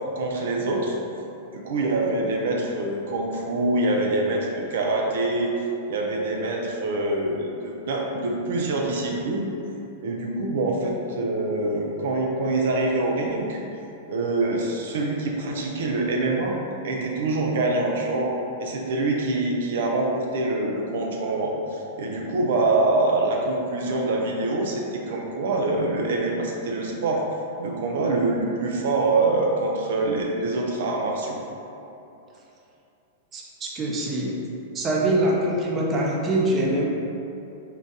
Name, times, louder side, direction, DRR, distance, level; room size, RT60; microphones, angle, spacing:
voice 1, 0.2-1.0 1.5-5.5 5.9-9.5 10.0-13.6 14.1-16.6 16.8-27.2 27.6-31.4, right 2 dB, 75° right, 0 dB, 0.5 m, -25 dB
voice 2, 33.3-34.3 34.7-36.9, right 1 dB, 25° right, -3 dB, 0.6 m, -24 dB
3.9 x 2.4 x 4.0 m, 2.8 s
hypercardioid pair, 135°, 0 cm